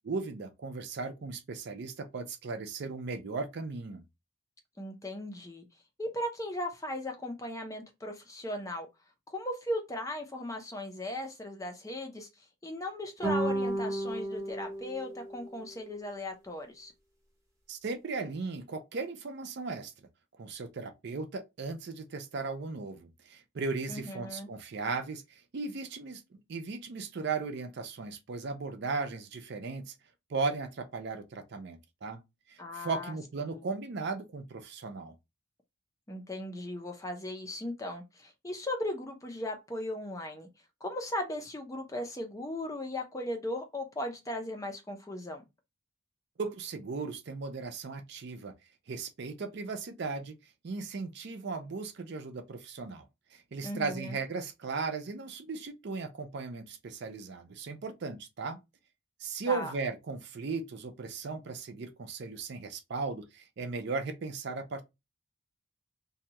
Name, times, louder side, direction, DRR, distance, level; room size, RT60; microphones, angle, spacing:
voice 1, 0.0-4.0 17.7-19.9 20.4-26.2 26.5-29.9 30.3-32.2 32.5-35.1 46.4-48.5 48.9-50.4 50.6-53.0 53.3-58.6 59.2-64.8, right 4 dB, 55° right, 0.4 m, -37 dB
voice 2, 4.8-5.6 6.0-8.9 9.3-12.3 12.6-16.9 23.9-24.5 32.6-33.1 33.4-33.6 36.1-40.5 40.8-45.4 53.6-54.2 59.5-59.7, left 1 dB, 15° left, 0.5 m, -37 dB
sound 1, 13.2-15.8, right 1 dB, 15° right, 0.8 m, -33 dB
2.7 x 2.2 x 2.8 m
head